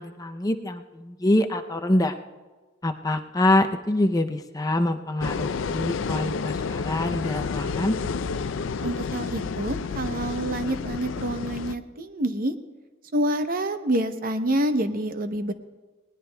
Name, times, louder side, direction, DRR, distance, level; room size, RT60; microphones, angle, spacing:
voice 1, 0.0-2.1 2.8-8.0, left 1 dB, 20° left, 7 dB, 0.5 m, -25 dB
sound 1, 5.2-11.7, left 5 dB, 70° left, 0.4 m, -30 dB
voice 2, 8.8-12.6 13.1-15.5, right 1 dB, 45° right, 9 dB, 0.7 m, -27 dB
20.0 x 19.0 x 2.2 m, 1.3 s
head